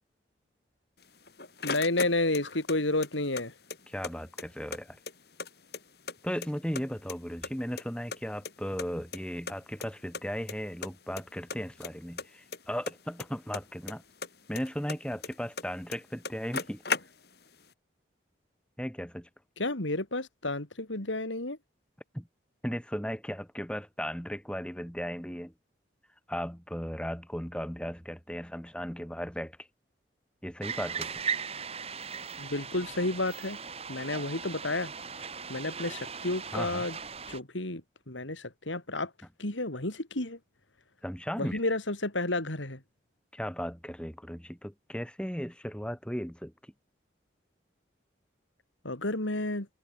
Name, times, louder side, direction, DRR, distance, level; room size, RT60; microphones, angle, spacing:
sound 1, 1.0-2.8 3.0-4.1 4.4-4.5 4.7-6.1 6.4-7.2 7.4-8.9 9.1-9.2 9.5-9.6 9.8-9.9 10.1-10.5 10.8-11.2 11.5-13.9 14.2-15.6 15.9-16.0 16.2-17.5, left 4 dB, 55° left, 3.9 m, -36 dB
voice 1, 1.6-3.5 19.6-21.6 32.4-33.6 33.9-34.9 35.5-37.0 37.3-39.1 39.4-40.4 41.4-42.8 48.8-49.7, left 2 dB, 85° left, 3.8 m, -31 dB
voice 2, 3.9-5.0 6.2-14.0 14.5-16.8 18.8-19.3 22.1-22.3 22.6-25.5 26.3-29.6 30.4-31.2 36.5-36.9 41.0-41.6 43.3-46.7, equal, 5° left, 6.9 m, -36 dB
sound 2, 30.6-37.4, right 6 dB, 35° right, 3.5 m, -38 dB
head